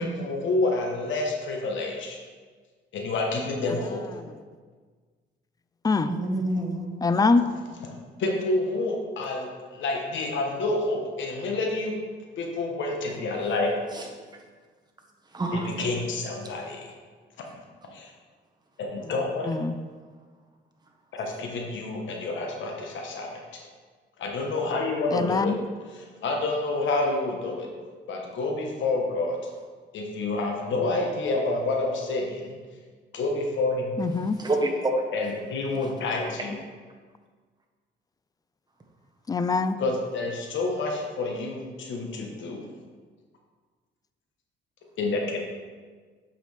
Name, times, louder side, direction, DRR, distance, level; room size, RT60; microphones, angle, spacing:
voice 1, 0.0-2.2 2.9-4.2 8.2-12.0 12.4-13.7 15.5-16.9 17.9-18.1 18.8-19.5 21.1-23.6 24.2-25.5 25.9-27.7 28.1-29.4 29.9-32.5 33.1-34.0 35.1-36.5 39.8-42.7 45.0-45.5, left 2 dB, 70° left, 1 dB, 1.2 m, -28 dB
voice 2, 6.0-6.9 13.9-14.1 15.3-15.8 34.2-35.1, right 1 dB, 20° right, 1 dB, 1.3 m, -27 dB
voice 3, 7.0-7.5 19.5-19.7 25.1-25.5 34.0-34.4 39.3-39.8, left 4 dB, 20° left, 11 dB, 0.4 m, -23 dB
7.9 x 5.8 x 3.4 m, 1.5 s
cardioid pair, 90°, 20 cm